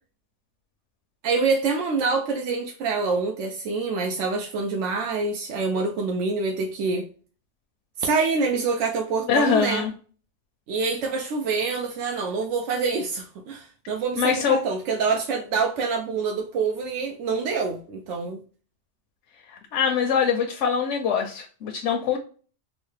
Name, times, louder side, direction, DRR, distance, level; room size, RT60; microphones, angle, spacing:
voice 1, 1.2-7.1 8.0-9.9 10.7-18.4, right 4 dB, 85° right, 0.9 m, -26 dB
voice 2, 9.3-9.9 14.2-14.6 19.5-22.2, left 7 dB, 85° left, 0.9 m, -23 dB
4.0 x 2.1 x 3.1 m
omnidirectional pair, 1.2 m